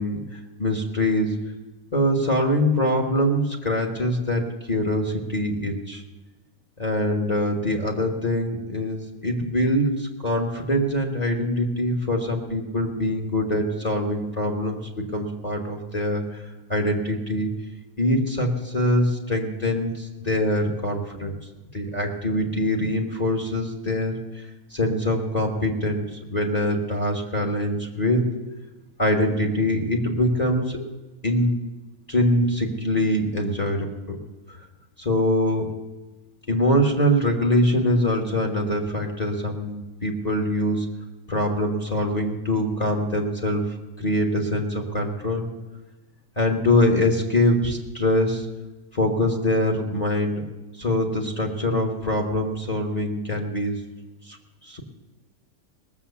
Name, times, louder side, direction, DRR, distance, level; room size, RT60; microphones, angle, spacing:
voice 1, 0.0-1.4 1.9-6.0 6.8-17.5 18.0-21.3 21.7-28.3 29.0-30.9 31.2-31.6 32.1-34.2 35.0-35.7 36.5-40.9 41.3-43.7 44.0-45.5 46.4-48.5 48.9-50.4 50.8-53.8 54.3-54.4 54.6-54.8, left 1 dB, 30° left, 1 dB, 1.5 m, -24 dB
18.5 x 7.4 x 7.0 m, 1.1 s
omnidirectional pair, 1.5 m